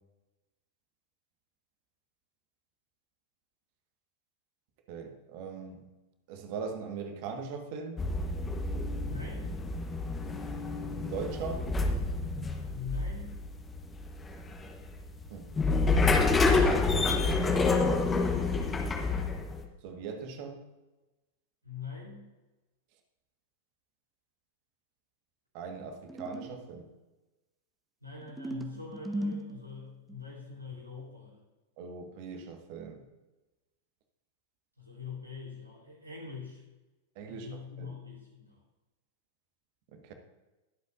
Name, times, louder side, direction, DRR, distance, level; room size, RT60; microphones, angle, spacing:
voice 1, 4.9-5.8 6.3-8.1 11.0-11.7 15.3-15.5 17.2-17.8 19.8-20.6 25.5-26.9 31.8-33.0 37.1-37.5 37.8-37.9 39.9-40.1, right 5 dB, 45° right, 1.6 m, -40 dB
sound 1, 8.0-19.6, left 3 dB, 15° left, 1.2 m, -28 dB
voice 2, 9.0-9.5 12.7-13.4 21.6-22.3 28.0-31.4 34.8-36.6 37.2-38.6, left 5 dB, 85° right, 4.0 m, -43 dB
sound 2, 26.1-26.7 28.2-30.2, right 1 dB, 5° right, 1.0 m, -37 dB
21.0 x 8.1 x 2.6 m
figure-of-eight pair, 95°, 0 cm